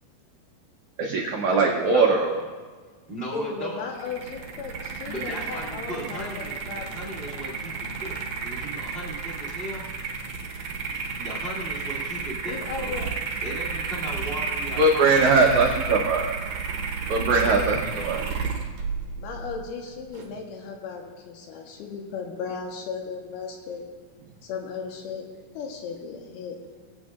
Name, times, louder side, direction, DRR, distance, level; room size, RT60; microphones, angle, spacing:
voice 1, 1.0-2.3 14.8-16.3 17.1-18.2, right 3 dB, 85° right, 0 dB, 1.6 m, -21 dB
voice 2, 1.8-2.4 3.1-3.8 5.1-9.8 11.1-12.9 13.4-15.4, right 1 dB, 40° right, -4 dB, 0.8 m, -37 dB
voice 3, 3.3-7.5 12.4-13.2 17.4-17.6 19.2-23.9 24.4-25.3 25.5-26.6, left 5 dB, 75° left, 2 dB, 3.0 m, -36 dB
sound 1, 3.9-20.3, right 5 dB, 70° right, 1.8 m, -32 dB
21.0 x 8.2 x 2.4 m, 1.5 s
omnidirectional pair, 4.7 m